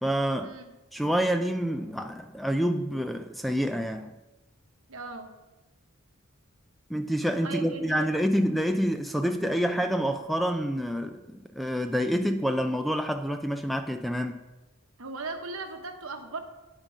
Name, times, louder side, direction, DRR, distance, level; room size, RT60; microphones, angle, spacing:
voice 1, 0.0-0.6 0.9-4.1 6.9-14.4, equal, ahead, 0.4 m, -27 dB
voice 2, 4.9-5.3 7.4-8.1 15.0-16.4, right 3 dB, 75° right, 1.2 m, -37 dB
9.1 x 8.9 x 5.2 m
head